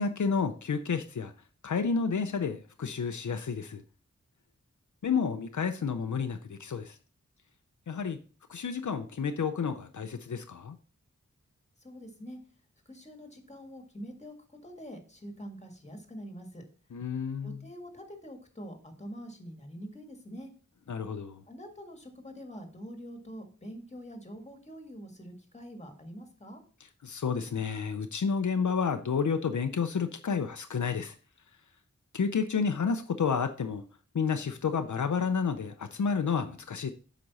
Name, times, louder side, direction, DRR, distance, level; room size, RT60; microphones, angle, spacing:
voice 1, 0.0-1.3 1.6-3.8 5.0-7.0 7.9-8.2 8.5-10.8 16.9-17.6 20.9-21.4 27.0-31.2 32.1-33.8 34.1-36.9, left 5 dB, 80° left, 7 dB, 0.6 m, -30 dB
voice 2, 11.8-12.4 12.8-14.3 14.6-16.6 17.4-20.5 21.5-26.6, equal, 20° left, 4 dB, 1.7 m, -45 dB
7.8 x 5.1 x 4.1 m, 0.38 s
wide cardioid pair, 65°, 30 cm